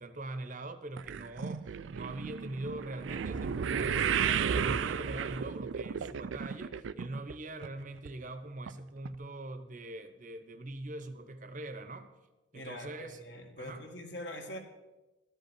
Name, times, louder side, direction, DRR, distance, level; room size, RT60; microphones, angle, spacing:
voice 1, 0.0-12.1 12.5-13.2 13.6-13.8, right 2 dB, 40° right, 9 dB, 0.9 m, -42 dB
sound 1, 1.0-7.4 7.6-8.1 8.7-8.8 9.1-9.2, right 7 dB, 70° right, 0.4 m, -33 dB
voice 2, 12.5-14.6, left 1 dB, 60° left, 3 dB, 1.7 m, -43 dB
12.5 x 5.4 x 8.4 m, 1.1 s
head